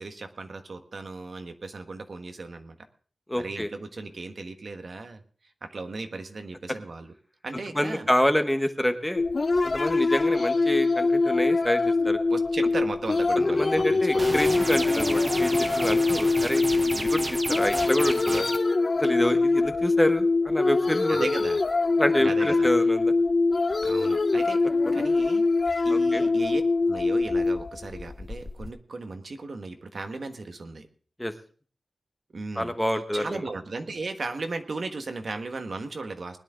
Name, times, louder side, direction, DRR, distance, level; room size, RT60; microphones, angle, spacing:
voice 1, 0.0-2.8 3.4-5.2 5.6-7.1 7.4-8.1 12.3-14.4 21.1-21.6 22.2-22.7 23.8-24.6 24.9-25.4 25.8-26.6 26.9-30.9 32.3-32.7 33.1-36.4, right 3 dB, 60° right, 6 dB, 1.4 m, -36 dB
voice 2, 3.3-3.7 7.7-9.2 9.6-12.2 13.3-16.6 16.9-18.5 19.0-21.3 22.0-23.1 25.9-26.2 31.2-31.3 32.6-33.4, left 1 dB, 10° left, 7 dB, 1.1 m, -27 dB
sound 1, 9.2-28.7, left 3 dB, 45° left, 0.6 m, -24 dB
sound 2, 14.2-18.6, right 2 dB, 30° right, 1.0 m, -32 dB
20.0 x 10.5 x 3.7 m, 0.41 s
wide cardioid pair, 110°, 0 cm